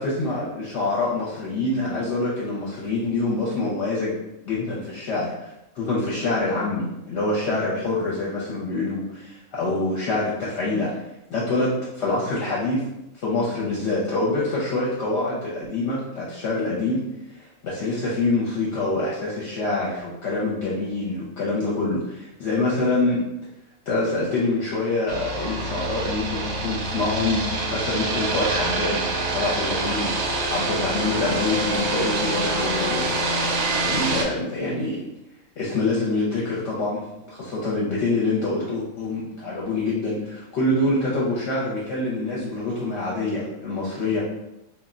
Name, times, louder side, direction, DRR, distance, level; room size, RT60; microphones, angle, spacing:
voice 1, 0.0-4.1 4.5-5.3 5.8-10.9 11.3-12.8 13.2-17.1 17.3-23.2 23.9-30.1 30.5-33.2 33.8-35.1 35.6-44.2, left 2 dB, 65° left, -6 dB, 0.9 m, -26 dB
sound 1, 25.1-34.2, right 2 dB, 65° right, 0.8 m, -26 dB
2.3 x 2.1 x 3.6 m, 0.90 s
omnidirectional pair, 1.4 m